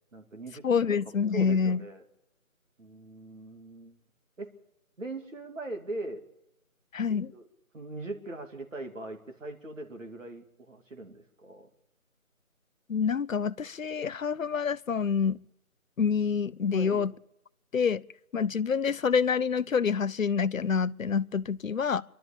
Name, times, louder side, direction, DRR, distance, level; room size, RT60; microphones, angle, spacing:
voice 1, 0.1-0.9 1.3-2.0 2.8-4.0 4.4-4.5 5.0-6.3 7.1-7.5 7.7-11.7 16.7-17.1, right 2 dB, 60° right, 2.8 m, -41 dB
voice 2, 0.6-1.8 6.9-7.3 12.9-15.4 16.0-17.1 17.7-18.0 18.3-22.0, left 6 dB, 65° left, 0.7 m, -27 dB
25.5 x 12.0 x 8.6 m
figure-of-eight pair, 165°, 42 cm